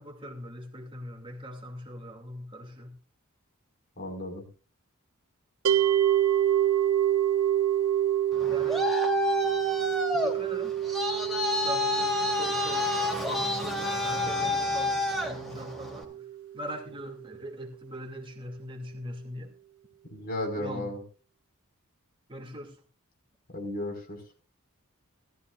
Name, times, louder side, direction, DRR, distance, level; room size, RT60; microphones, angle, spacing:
voice 1, 0.0-2.9 8.5-8.9 10.1-10.7 11.6-16.1 16.5-19.5 20.6-20.9 22.3-22.7, equal, 25° right, 2.5 m, -41 dB
voice 2, 4.0-4.5 20.1-21.0 23.5-24.2, left 1 dB, 45° left, 5.4 m, -34 dB
sound 1, 5.6-16.8, right 11 dB, 70° right, 1.2 m, -28 dB
Traffic noise roadway noise, 8.3-16.0, left 2 dB, ahead, 3.2 m, -29 dB
19.0 x 14.0 x 2.5 m
head